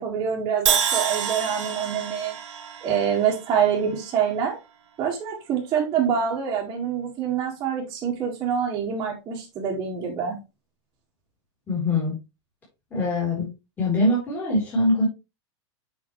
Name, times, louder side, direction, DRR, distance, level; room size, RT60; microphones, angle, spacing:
voice 1, 0.0-2.4 2.8-4.6 5.0-10.4, right 7 dB, 25° right, -6 dB, 1.8 m, -26 dB
Crash cymbal, 0.7-4.7, right 8 dB, 85° right, 2.0 m, -28 dB
voice 2, 11.7-12.1 12.9-13.5 13.8-15.1, left 1 dB, 10° left, -6 dB, 3.3 m, -23 dB
7.2 x 5.8 x 3.1 m, 0.26 s
supercardioid pair, 160°, 16 cm